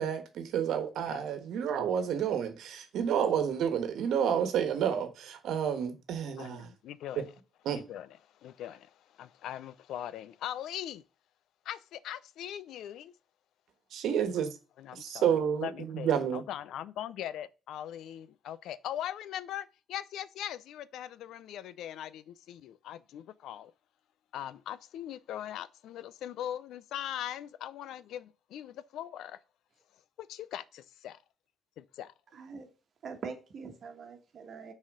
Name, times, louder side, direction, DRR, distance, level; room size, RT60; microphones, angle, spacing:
voice 1, 0.0-6.7 7.2-7.3 7.6-7.8 13.9-14.5 14.9-16.4, right 8 dB, 80° right, 1.3 m, -30 dB
voice 2, 6.4-7.3 7.7-11.0 11.6-13.1 14.8-23.7 24.3-29.4 30.2-31.2 31.8-32.1, left 11 dB, 85° left, 0.5 m, -41 dB
voice 3, 32.3-32.7 33.0-34.7, right 5 dB, 45° right, 1.5 m, -43 dB
6.1 x 4.2 x 5.3 m
cardioid pair, 160°, 0 cm